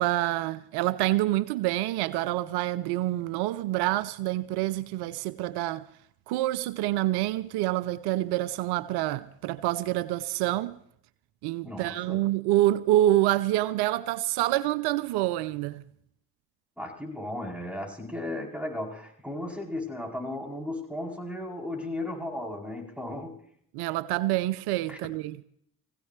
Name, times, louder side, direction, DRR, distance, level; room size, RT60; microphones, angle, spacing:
voice 1, 0.0-5.9 6.3-10.8 11.4-15.8 23.7-25.4, right 15 dB, 85° right, 0.6 m, -27 dB
voice 2, 11.6-12.2 16.8-23.4 24.9-25.0, left 1 dB, 5° right, 7.9 m, -35 dB
22.0 x 16.5 x 3.2 m
hypercardioid pair, 45°, 38 cm